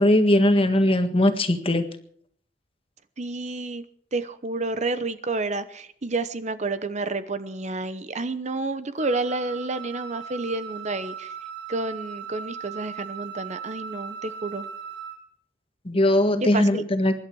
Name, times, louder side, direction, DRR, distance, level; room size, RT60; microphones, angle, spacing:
voice 1, 0.0-1.8 15.9-17.1, left 1 dB, 30° left, 7 dB, 1.6 m, -20 dB
voice 2, 3.2-3.8 4.1-11.3 11.7-14.7 16.4-16.8, right 3 dB, 40° right, 12 dB, 0.8 m, -30 dB
Wind instrument woodwind instrument, 9.0-15.2, right 7 dB, 65° right, 3.9 m, -38 dB
24.0 x 11.5 x 4.7 m, 0.63 s
head